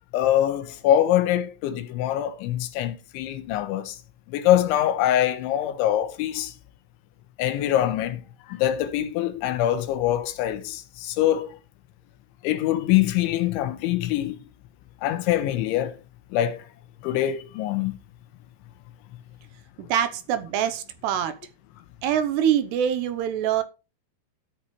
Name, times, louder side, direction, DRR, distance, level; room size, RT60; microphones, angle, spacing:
voice 1, 0.1-4.0 4.3-6.5 7.4-8.2 8.5-11.6 12.4-14.4 15.0-16.0 16.3-16.6 17.0-18.0, left 12 dB, 85° left, 3.4 m, -24 dB
voice 2, 19.8-21.3 22.0-23.6, right 9 dB, 75° right, 2.8 m, -24 dB
14.0 x 8.8 x 3.1 m
omnidirectional pair, 5.3 m